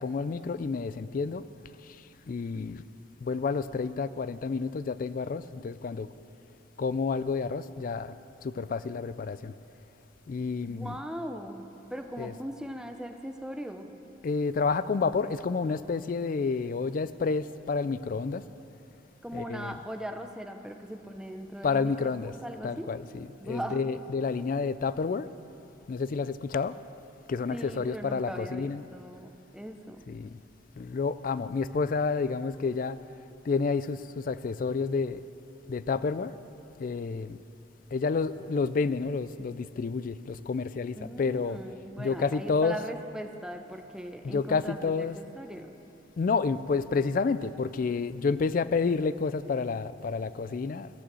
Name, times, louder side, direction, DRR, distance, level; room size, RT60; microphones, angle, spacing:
voice 1, 0.0-1.4 1.8-2.8 3.2-6.1 6.8-8.1 8.4-9.5 10.3-11.0 12.2-12.3 14.2-18.4 19.3-19.8 21.6-22.4 22.6-25.3 25.9-26.7 27.3-28.8 30.1-30.4 30.8-33.0 33.5-35.2 35.7-36.3 36.8-37.4 37.9-41.6 42.0-42.8 44.2-45.2 46.2-50.9, left 4 dB, 45° left, 0.3 m, -30 dB
voice 2, 10.7-11.6 11.9-14.0 19.2-22.1 22.4-22.9 23.4-23.8 27.5-30.0 40.9-45.7, equal, 5° right, 0.6 m, -39 dB
15.0 x 6.3 x 7.6 m
head